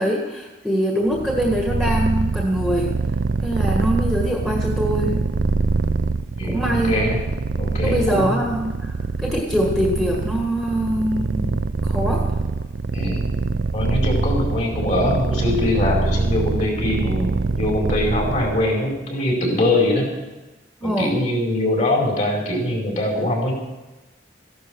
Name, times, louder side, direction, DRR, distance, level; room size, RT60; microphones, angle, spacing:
voice 1, 0.0-2.9 3.4-5.2 6.4-6.9 7.8-12.3 20.8-21.2, equal, 5° left, -1 dB, 1.8 m, -23 dB
Purr, 1.1-18.8, right 4 dB, 80° right, 0.5 m, -24 dB
voice 2, 6.8-7.2 7.6-8.4 12.9-13.3 13.7-20.1 20.8-23.5, left 1 dB, 40° left, -1 dB, 4.8 m, -22 dB
15.0 x 11.5 x 6.3 m, 1.1 s
head